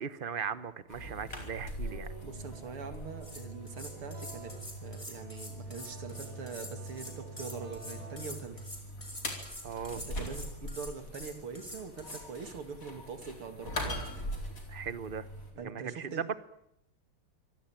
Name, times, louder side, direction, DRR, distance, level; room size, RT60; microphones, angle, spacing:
voice 1, 0.0-2.1 9.6-10.0 14.7-15.3 15.5-16.3, right 7 dB, 45° right, 14 dB, 0.7 m, -38 dB
sound 1, 0.9-15.5, equal, 40° left, 4.7 m, -42 dB
sound 2, 1.8-8.9, right 2 dB, 65° right, 6.3 m, -52 dB
voice 2, 2.2-4.5 4.8-8.6 10.1-14.0 15.6-16.2, right 5 dB, 90° right, 7 dB, 3.4 m, -43 dB
sound 3, 2.9-3.0 3.2-12.2, left 1 dB, 15° left, 4.6 m, -46 dB
26.0 x 17.0 x 9.0 m, 0.77 s
omnidirectional pair, 2.3 m